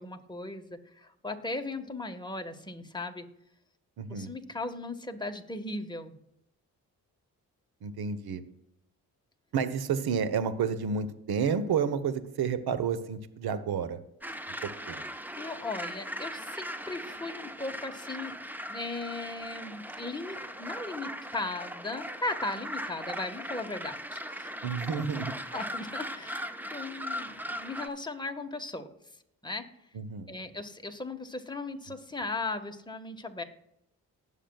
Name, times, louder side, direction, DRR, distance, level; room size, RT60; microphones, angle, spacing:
voice 1, 0.0-3.3 4.1-6.1 15.3-18.4 18.7-24.5 24.9-25.0 25.5-28.9 29.4-29.7 30.3-33.4, left 2 dB, 10° left, 4 dB, 1.5 m, -37 dB
voice 2, 4.0-4.3 7.8-8.4 9.5-14.0 14.6-15.0 24.6-25.3 29.9-30.3, right 6 dB, 70° right, 12 dB, 1.2 m, -30 dB
sound 1, 14.2-27.9, equal, 5° right, 1.0 m, -39 dB
19.0 x 7.3 x 2.4 m, 0.81 s
supercardioid pair, 50°, 39 cm